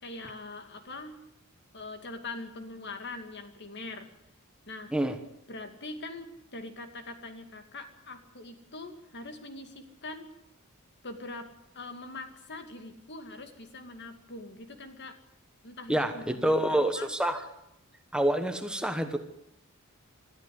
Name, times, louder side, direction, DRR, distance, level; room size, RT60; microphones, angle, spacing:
voice 1, 0.0-1.2 1.7-4.1 4.7-4.9 5.5-10.3 11.0-11.5 11.7-15.2 15.6-17.1, left 2 dB, 55° left, 7 dB, 2.5 m, -42 dB
voice 2, 15.9-17.4 18.1-19.2, right 1 dB, 5° right, 7 dB, 1.2 m, -27 dB
21.5 x 13.5 x 9.5 m, 0.82 s
head